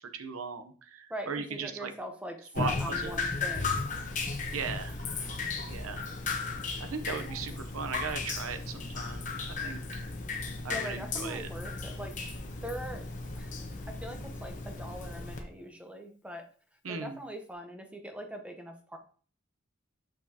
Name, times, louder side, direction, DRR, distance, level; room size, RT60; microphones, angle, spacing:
voice 1, 0.0-1.9 2.5-3.2 4.5-5.1 5.7-6.1 6.8-10.0 10.6-11.5 16.8-17.2, right 5 dB, 90° right, 8 dB, 0.7 m, -38 dB
voice 2, 1.1-3.8 10.7-12.2 12.6-13.1 13.3-16.5 16.9-19.0, equal, 5° right, 4 dB, 0.7 m, -42 dB
Drip, 2.5-15.4, left 4 dB, 35° left, 1.0 m, -35 dB
6.6 x 6.1 x 2.8 m, 0.42 s
head